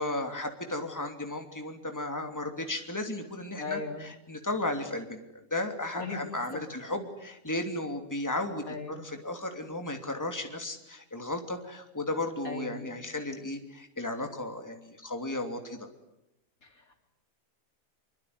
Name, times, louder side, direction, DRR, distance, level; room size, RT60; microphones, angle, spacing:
voice 1, 0.0-5.2 5.5-15.8, left 2 dB, 10° left, 5 dB, 3.0 m, -34 dB
voice 2, 3.6-4.1 5.9-6.2 8.7-9.1 12.4-13.0 16.6-17.0, left 4 dB, 75° left, 5 dB, 4.1 m, -38 dB
25.5 x 24.5 x 9.6 m, 0.85 s
omnidirectional pair, 1.5 m